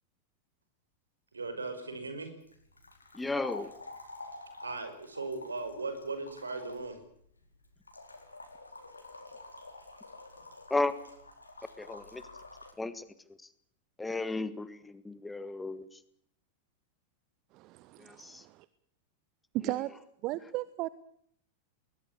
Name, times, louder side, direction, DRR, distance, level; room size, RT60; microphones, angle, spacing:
voice 1, 1.3-2.3 4.6-7.0, right 3 dB, 75° right, 9 dB, 5.4 m, -38 dB
sound 1, 2.4-12.7, left 2 dB, 80° left, 4.5 m, -49 dB
voice 2, 3.1-3.7 10.7-10.9 11.8-12.2 12.8-13.0 14.0-16.0 18.0-18.4, left 3 dB, 10° left, 14 dB, 1.7 m, -34 dB
voice 3, 17.5-18.7 19.5-19.9 20.2-20.9, right 18 dB, 40° right, 18 dB, 1.0 m, -36 dB
21.0 x 21.0 x 8.4 m, 0.69 s
figure-of-eight pair, 90°, 0 cm